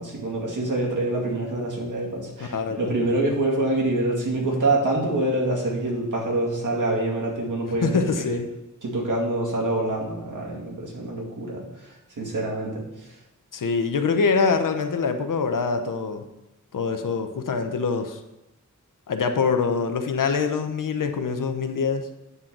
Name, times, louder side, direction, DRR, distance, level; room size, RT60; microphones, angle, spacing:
voice 1, 0.0-8.4 8.8-11.6 12.2-12.8, right 2 dB, 70° right, -3 dB, 2.3 m, -26 dB
voice 2, 2.4-3.0 7.8-8.5 13.5-16.2 16.7-18.2 19.1-22.1, left 5 dB, 85° left, 7 dB, 0.8 m, -24 dB
9.5 x 3.8 x 5.9 m, 0.96 s
wide cardioid pair, 80°, 31 cm